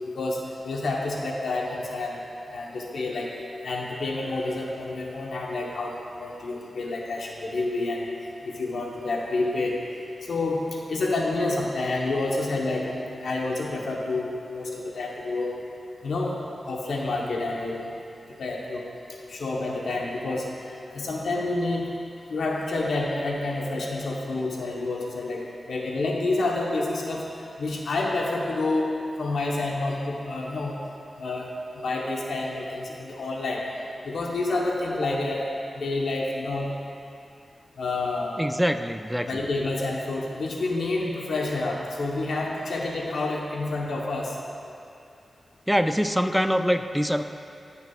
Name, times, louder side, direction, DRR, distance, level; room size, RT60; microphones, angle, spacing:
voice 1, 0.1-2.2 2.5-3.3 3.6-8.0 8.4-9.8 10.2-10.6 10.9-15.6 16.0-16.4 16.7-17.9 18.4-18.9 19.3-20.5 20.9-21.9 22.3-27.3 27.6-28.9 29.2-30.7 31.2-31.5 31.8-33.6 34.0-35.5 35.8-36.7 37.8-38.4 39.3-44.4, left 2 dB, 85° left, -1 dB, 1.0 m, -28 dB
voice 2, 38.4-39.5 45.7-47.2, equal, ahead, 8 dB, 0.3 m, -24 dB
17.0 x 5.8 x 2.4 m, 2.6 s
wide cardioid pair, 105°, 0 cm